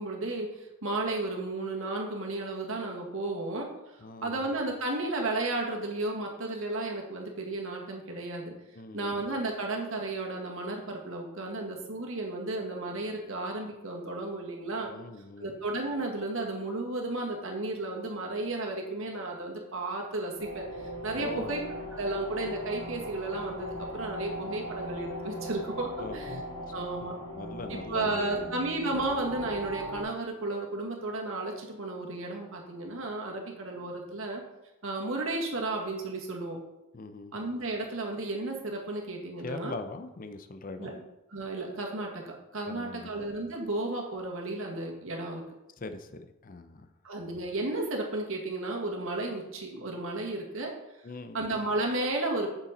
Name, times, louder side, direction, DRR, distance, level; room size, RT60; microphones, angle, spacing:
voice 1, 0.0-8.5 8.9-14.9 15.4-21.6 21.9-26.4 26.7-27.2 27.7-34.4 34.8-36.6 37.3-39.7 40.8-40.9 41.3-45.4 47.0-50.7 51.3-52.5, right 2 dB, 65° right, 0 dB, 1.9 m, -33 dB
voice 2, 4.0-4.4 8.7-9.2 14.9-15.6 21.1-21.5 26.0-26.7 27.0-28.6 36.9-37.4 39.4-41.0 42.7-43.1 45.8-46.9 51.0-51.4, left 3 dB, 40° left, 9 dB, 0.6 m, -41 dB
sound 1, 20.4-30.0, left 1 dB, 75° left, 3.1 m, -39 dB
8.5 x 6.9 x 4.2 m, 0.93 s
head